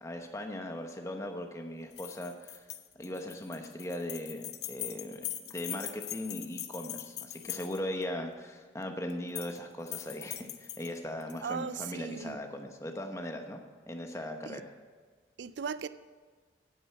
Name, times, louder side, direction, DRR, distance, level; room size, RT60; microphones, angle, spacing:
voice 1, 0.0-2.6 3.0-5.2 5.5-13.6 13.9-14.7, left 1 dB, 15° left, 1.0 m, -39 dB
sound 1, 1.9-8.0 9.1-9.6 9.9-11.4, left 13 dB, 70° left, 0.8 m, -41 dB
voice 2, 11.4-12.4 14.5-14.6 15.4-15.9, right 6 dB, 80° right, 0.4 m, -37 dB
9.3 x 8.7 x 7.8 m
head